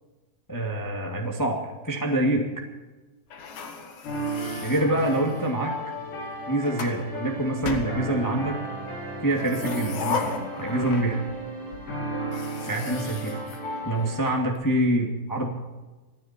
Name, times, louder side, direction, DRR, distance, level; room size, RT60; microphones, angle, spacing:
voice 1, 0.5-2.5 4.6-5.7 6.5-8.6 9.2-10.2 10.6-11.2 12.6-13.4 13.8-15.5, right 1 dB, 15° left, 0 dB, 0.7 m, -25 dB
sound 1, 3.3-5.6 6.3-7.0 7.6-8.5 9.3-11.4 11.7-11.8 12.2-14.3, left 5 dB, 55° left, 2.4 m, -36 dB
sound 2, 4.0-14.3, right 1 dB, 75° left, 7.6 m, -34 dB
27.5 x 10.5 x 4.5 m, 1.2 s
omnidirectional pair, 5.1 m